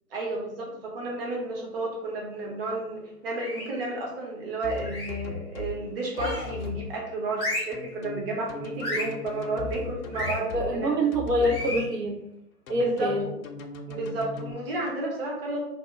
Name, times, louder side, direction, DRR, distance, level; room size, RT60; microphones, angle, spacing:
voice 1, 0.1-10.9 12.7-13.4 13.9-15.6, right 2 dB, 35° right, -2 dB, 0.9 m, -32 dB
sound 1, 3.3-3.8 4.8-5.3 6.1-6.6 7.3-7.8 8.8-9.2 10.1-10.4 11.4-11.9, left 1 dB, 5° left, 0.5 m, -33 dB
sound 2, 4.6-5.8 6.2-6.8 7.7-10.7 11.1-11.8 12.7-14.5, left 4 dB, 60° left, 0.5 m, -38 dB
voice 2, 10.5-12.2 12.7-13.3, right 1 dB, 85° right, 0 dB, 0.9 m, -25 dB
2.8 x 2.1 x 3.4 m, 0.83 s
figure-of-eight pair, 135°, 47 cm